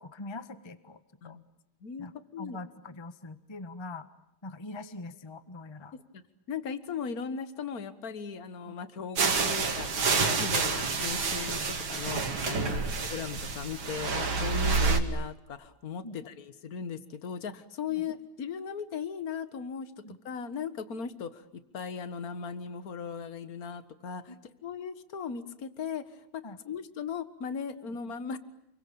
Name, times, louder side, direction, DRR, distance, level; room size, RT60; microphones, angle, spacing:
voice 1, 0.0-1.4 2.0-4.1 4.4-5.9 8.6-8.7 10.4-10.5 12.6-12.8 16.0-16.2 17.9-18.0 20.0-20.2 24.3-24.4 26.4-26.6, left 2 dB, 15° left, 12 dB, 1.1 m, -43 dB
voice 2, 1.8-2.6 5.9-6.0 6.5-19.9 20.2-21.4 21.7-24.3 24.6-28.4, left 6 dB, 50° left, 12 dB, 2.0 m, -38 dB
sound 1, 9.2-15.0, right 4 dB, 80° right, 3.3 m, -28 dB
29.5 x 23.5 x 8.7 m, 0.81 s
omnidirectional pair, 2.2 m